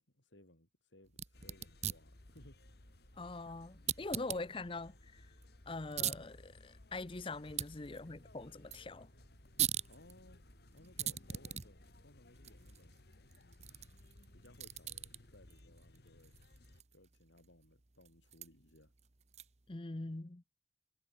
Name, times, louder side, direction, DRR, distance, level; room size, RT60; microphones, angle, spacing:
voice 1, 0.0-2.6 3.9-4.5 7.6-8.0 9.9-10.4 10.7-13.0 14.3-16.3 16.9-18.9, left 1 dB, 85° left, 6.4 m, -63 dB
sound 1, 1.1-19.7, right 10 dB, 35° right, 1.0 m, -44 dB
sound 2, 1.3-16.8, left 1 dB, 60° left, 1.9 m, -60 dB
voice 2, 3.2-5.3 5.7-9.1 19.7-20.4, left 2 dB, 30° left, 0.7 m, -43 dB
head